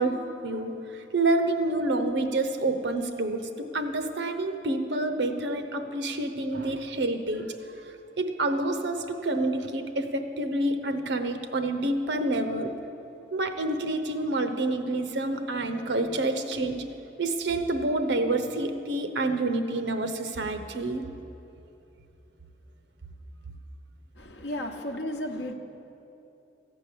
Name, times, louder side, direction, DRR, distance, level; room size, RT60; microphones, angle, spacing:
voice 1, 0.0-12.8 13.3-16.9 17.2-21.0, right 2 dB, 75° right, 7 dB, 0.8 m, -28 dB
voice 2, 24.2-25.5, left 1 dB, 70° left, 2 dB, 0.9 m, -34 dB
14.5 x 5.3 x 8.4 m, 2.9 s
head